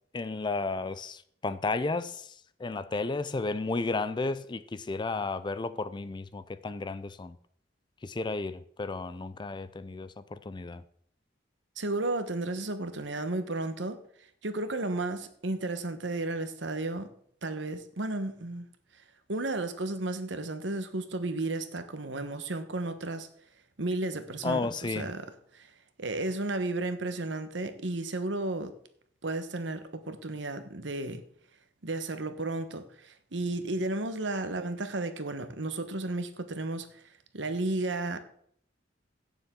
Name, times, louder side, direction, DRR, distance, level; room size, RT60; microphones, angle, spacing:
voice 1, 0.1-2.3 2.6-7.4 8.0-10.8 24.4-25.1, left 3 dB, 25° left, 0.4 m, -33 dB
voice 2, 11.8-14.0 14.4-17.1 17.4-18.6 19.3-23.3 23.8-25.3 25.5-25.7 26.0-28.7 29.2-31.2 31.8-37.0 37.3-38.2, right 2 dB, 75° right, 1.1 m, -33 dB
16.5 x 7.0 x 3.8 m
head